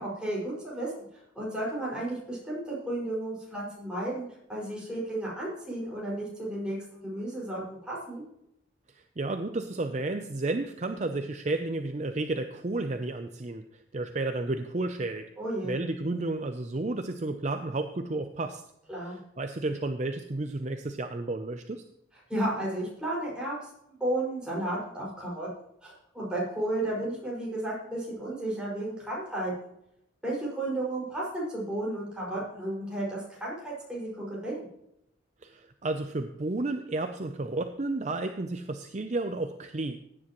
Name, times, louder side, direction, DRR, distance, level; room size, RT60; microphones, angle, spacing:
voice 1, 0.0-8.2 15.4-15.8 18.9-19.2 22.3-25.5 25.8-29.5 30.2-34.7, right 1 dB, 5° right, -6 dB, 5.4 m, -33 dB
voice 2, 8.9-15.3 15.6-18.6 19.0-21.8 35.4-40.0, right 2 dB, 35° right, 7 dB, 0.5 m, -32 dB
16.0 x 9.9 x 3.0 m, 0.79 s
head